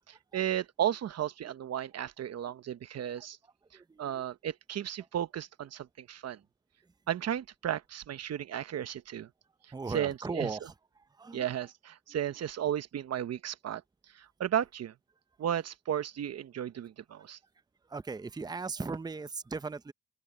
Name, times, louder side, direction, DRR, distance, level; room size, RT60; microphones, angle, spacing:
voice 1, 0.1-3.4 4.0-6.4 7.1-9.3 9.9-10.5 11.3-13.8 14.1-14.9 15.4-17.4, right 10 dB, 55° right, 1.1 m, -34 dB
voice 2, 3.7-4.2 9.7-10.7 11.2-11.5 17.9-19.9, right 4 dB, 15° right, 0.7 m, -37 dB
open air
cardioid pair, 90°, 30 cm